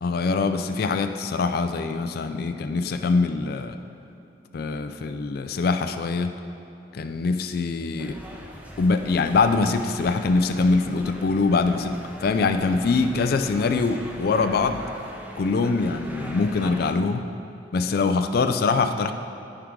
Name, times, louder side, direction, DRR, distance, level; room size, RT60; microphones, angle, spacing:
voice 1, 0.0-3.8 4.5-6.4 6.9-8.1 8.8-14.8 15.4-17.3 17.7-19.1, left 4 dB, 55° left, 7 dB, 0.4 m, -23 dB
sound 1, 8.0-16.9, equal, 10° right, 0.6 m, -41 dB
14.0 x 4.6 x 3.7 m, 2.8 s
head